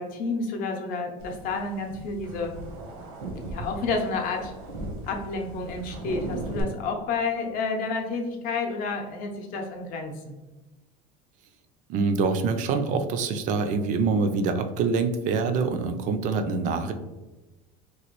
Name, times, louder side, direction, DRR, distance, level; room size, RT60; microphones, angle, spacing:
voice 1, 0.0-2.5 3.5-4.5 5.0-10.3, left 3 dB, 55° left, 3 dB, 0.6 m, -30 dB
sound 1, 1.2-6.6, right 2 dB, 80° right, 0.8 m, -38 dB
voice 2, 11.9-16.9, right 4 dB, 45° right, 7 dB, 0.4 m, -25 dB
3.0 x 2.4 x 3.0 m, 1.1 s
cardioid pair, 130°, 17 cm